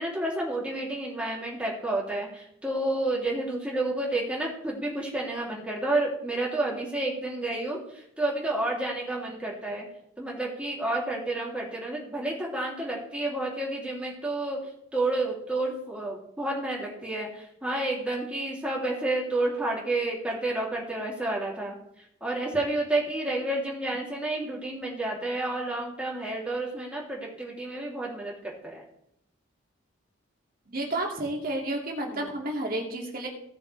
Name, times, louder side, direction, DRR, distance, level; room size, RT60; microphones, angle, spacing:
voice 1, 0.0-9.9 10.2-14.6 14.9-28.8 32.0-32.3, right 2 dB, 5° right, -5 dB, 3.2 m, -30 dB
voice 2, 30.7-33.3, right 1 dB, 45° right, 0 dB, 2.4 m, -31 dB
17.0 x 6.9 x 3.4 m, 0.76 s
head